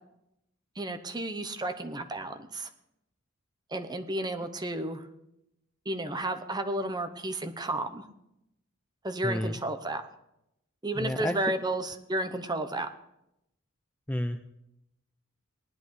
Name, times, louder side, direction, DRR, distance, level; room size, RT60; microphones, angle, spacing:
voice 1, 0.8-2.7 3.7-5.0 5.9-8.0 9.0-10.0 10.8-12.9, right 1 dB, 20° right, 7 dB, 0.8 m, -32 dB
voice 2, 9.2-9.6 11.0-11.4 14.1-14.4, left 1 dB, 5° left, 7 dB, 0.4 m, -30 dB
19.0 x 10.5 x 3.2 m, 0.84 s
head